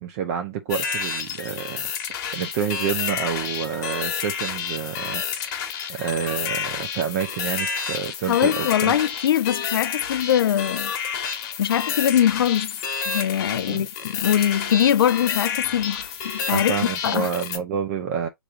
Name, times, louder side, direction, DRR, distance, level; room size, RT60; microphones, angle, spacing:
voice 1, 0.0-5.6 5.9-8.9 13.7-13.9 16.5-18.3, right 8 dB, 40° right, 0.7 m, -29 dB
sound 1, 0.7-17.6, left 7 dB, 45° left, 1.3 m, -29 dB
voice 2, 8.3-10.9 11.3-12.7 13.1-16.7 17.0-17.3, left 10 dB, 65° left, 0.5 m, -22 dB
6.5 x 3.1 x 2.5 m
hypercardioid pair, 135°, 13 cm